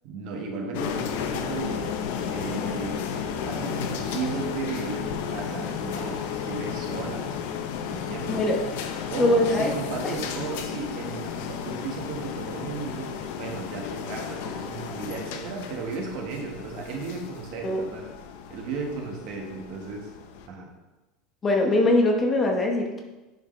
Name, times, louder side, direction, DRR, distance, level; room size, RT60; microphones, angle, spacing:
voice 1, 0.0-1.9 2.2-7.3 7.9-8.4 9.1-18.1 18.5-20.1 20.5-20.7, right 4 dB, 55° right, 1 dB, 1.5 m, -35 dB
sound 1, 0.7-20.5, left 7 dB, 75° left, 0.7 m, -33 dB
sound 2, 1.6-13.0, left 4 dB, ahead, 2.4 m, -46 dB
voice 2, 8.3-8.7 9.2-9.7 10.0-10.1 17.6-17.8 21.4-23.0, left 1 dB, 20° left, 2 dB, 0.9 m, -22 dB
10.5 x 5.0 x 3.3 m, 1.1 s
cardioid pair, 170°, 0 cm